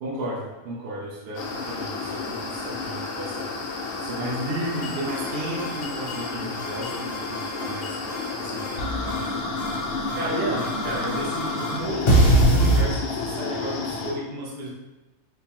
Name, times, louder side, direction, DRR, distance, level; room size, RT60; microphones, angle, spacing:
voice 1, 0.0-3.7 4.0-8.0 8.4-9.7 10.1-14.7, right 1 dB, 55° right, -6 dB, 0.7 m, -33 dB
sound 1, 1.3-14.1, left 3 dB, 90° left, 0.5 m, -31 dB
sound 2, 4.8-5.3 5.6-6.3 6.6-8.3 8.6-9.3 9.6-10.3 10.6-12.8, right 1 dB, 55° left, 0.7 m, -23 dB
4.4 x 2.2 x 2.9 m, 1.1 s
omnidirectional pair, 1.7 m